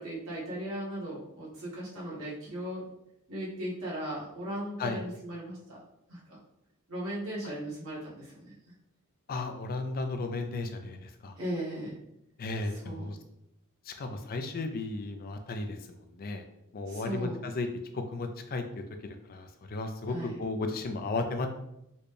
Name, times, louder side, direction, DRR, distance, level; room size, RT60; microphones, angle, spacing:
voice 1, 0.0-2.9 3.3-5.8 6.1-6.4 6.9-8.5 11.4-12.0 12.6-13.2 16.9-17.4 20.1-20.3, right 1 dB, 65° right, -6 dB, 1.4 m, -37 dB
voice 2, 9.3-11.3 12.4-13.2 13.9-16.4 16.7-17.7 17.9-18.6 19.3-21.5, left 3 dB, 40° left, 6 dB, 0.4 m, -34 dB
4.1 x 2.2 x 3.3 m, 0.83 s
head